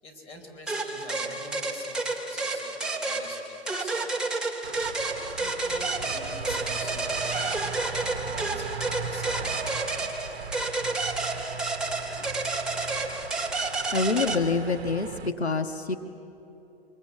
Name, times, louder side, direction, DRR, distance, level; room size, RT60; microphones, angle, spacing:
voice 1, 0.0-4.1 5.3-7.5 7.8-9.7, left 1 dB, 20° left, 3 dB, 4.4 m, -45 dB
sound 1, 0.7-14.4, right 3 dB, ahead, 2.3 m, -30 dB
sound 2, 4.6-15.3, right 6 dB, 70° right, 1.1 m, -38 dB
voice 2, 13.9-16.0, left 4 dB, 80° left, 6 dB, 1.5 m, -26 dB
24.5 x 23.5 x 8.5 m, 3.0 s
figure-of-eight pair, 115°, 32 cm